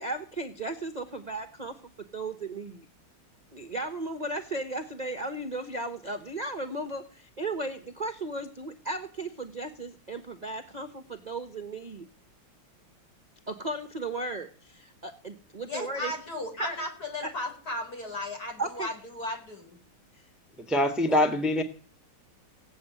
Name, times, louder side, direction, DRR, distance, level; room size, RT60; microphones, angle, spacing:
voice 1, 0.0-1.7 2.1-2.9 3.5-12.0 13.5-16.1 16.6-16.8 17.2-17.3 18.6-18.9 21.1-21.2, right 2 dB, 25° right, 7 dB, 1.1 m, -35 dB
voice 2, 15.6-19.8, left 1 dB, 45° left, 2 dB, 5.2 m, -35 dB
voice 3, 20.7-21.6, left 1 dB, ahead, 6 dB, 1.4 m, -24 dB
17.5 x 8.3 x 9.2 m, 0.41 s
omnidirectional pair, 2.3 m